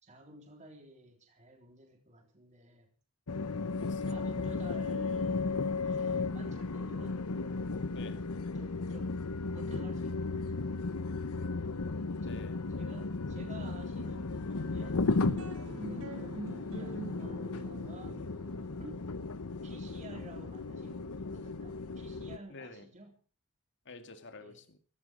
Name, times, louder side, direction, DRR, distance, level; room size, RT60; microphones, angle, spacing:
voice 1, 0.0-2.9 4.1-7.2 8.5-9.2 9.5-11.1 12.3-12.4 12.8-15.0 15.8-19.1 19.6-23.1 24.4-24.7, right 1 dB, 35° right, 3.8 m, -52 dB
sound 1, 3.3-22.4, left 3 dB, 85° left, 0.9 m, -35 dB
voice 2, 3.7-4.4 7.9-8.3 12.2-12.6 22.5-22.9 23.9-24.8, left 3 dB, 55° left, 2.1 m, -49 dB
sound 2, 14.5-21.1, right 2 dB, 65° right, 3.9 m, -46 dB
16.5 x 16.0 x 5.2 m
head